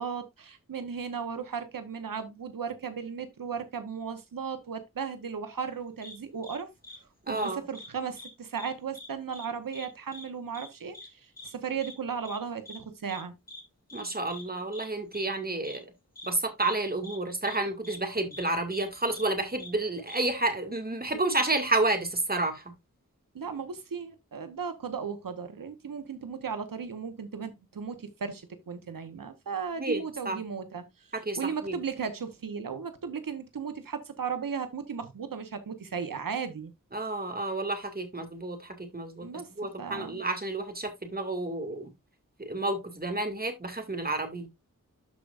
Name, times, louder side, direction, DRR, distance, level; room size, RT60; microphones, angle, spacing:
voice 1, 0.0-6.7 7.3-13.3 23.3-36.7 39.2-39.5 39.8-40.2, right 6 dB, 90° right, 1.1 m, -36 dB
sound 1, 6.0-6.1 6.4-6.6 6.8-7.0 7.3-7.9 8.1-8.3 8.5-9.1 9.3-9.5 9.7-9.9 10.1-10.2 10.5-10.7 10.9-11.1 11.4-11.5 11.8-11.9 12.2-12.4 12.7-12.8 13.1-13.2 13.5-13.6 13.9-14.0 14.3-14.4 14.7-14.9 15.1-15.3 15.6-15.8 16.2-16.3 16.6-16.7 17.0-17.2 17.4-17.6 17.8-18.0 18.3-18.4 18.7-18.8 19.1-19.3 19.6-19.7 20.1-20.2, left 2 dB, 50° left, 2.2 m, -44 dB
voice 2, 7.3-7.6 13.9-15.9 16.2-22.7 29.8-30.0 30.3-30.4 31.3-31.4 31.6-31.8 36.9-41.9 42.4-44.5, right 2 dB, 30° right, 2.2 m, -30 dB
13.0 x 4.8 x 2.5 m
wide cardioid pair, 75°, 33 cm